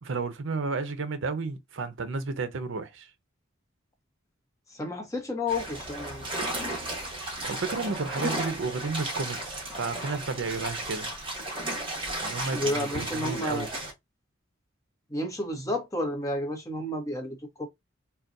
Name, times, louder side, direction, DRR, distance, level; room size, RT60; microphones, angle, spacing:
voice 1, 0.0-3.1 7.4-11.1 12.2-13.7, right 4 dB, 70° right, 0.6 m, -32 dB
voice 2, 4.7-6.3 12.5-13.7 15.1-17.7, left 1 dB, 15° left, 0.9 m, -31 dB
sound 1, 5.5-13.9, right 1 dB, 25° right, 1.4 m, -34 dB
3.9 x 2.2 x 2.5 m
head